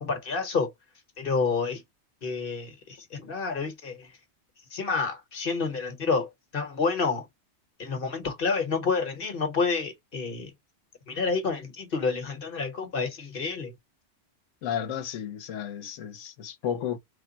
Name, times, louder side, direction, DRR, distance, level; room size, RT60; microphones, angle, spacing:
voice 1, 0.0-0.7 1.2-1.8 2.2-4.1 4.7-7.3 7.8-10.5 11.1-13.7, left 4 dB, 50° left, 1.2 m, -29 dB
voice 2, 14.6-17.0, left 9 dB, 85° left, 1.1 m, -33 dB
3.5 x 2.2 x 3.9 m
omnidirectional pair, 1.2 m